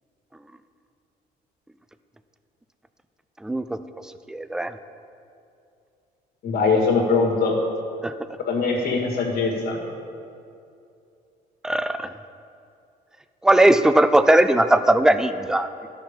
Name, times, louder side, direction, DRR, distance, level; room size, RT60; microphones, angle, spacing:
voice 1, 3.4-3.8 4.3-4.8 8.0-8.1 11.6-12.1 13.4-15.9, right 1 dB, 5° right, 11 dB, 0.4 m, -19 dB
voice 2, 6.4-7.6 8.4-9.8, left 4 dB, 65° left, 0 dB, 1.9 m, -22 dB
12.0 x 6.0 x 5.1 m, 2.5 s
cardioid pair, 110°, 17 cm